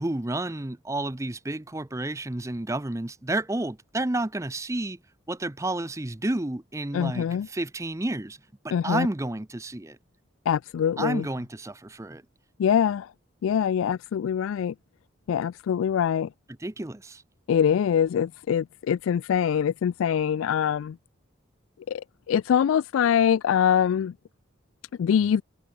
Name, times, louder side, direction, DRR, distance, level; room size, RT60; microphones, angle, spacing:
voice 1, 0.0-5.0 5.3-8.4 8.6-10.0 11.0-12.2 16.6-17.2, right 2 dB, 15° right, 0.6 m, -30 dB
voice 2, 6.9-7.5 8.7-9.1 10.5-11.2 12.6-13.1 13.4-14.7 15.3-16.3 17.5-21.0 21.9-24.1 25.0-25.4, left 8 dB, 90° left, 0.3 m, -24 dB
head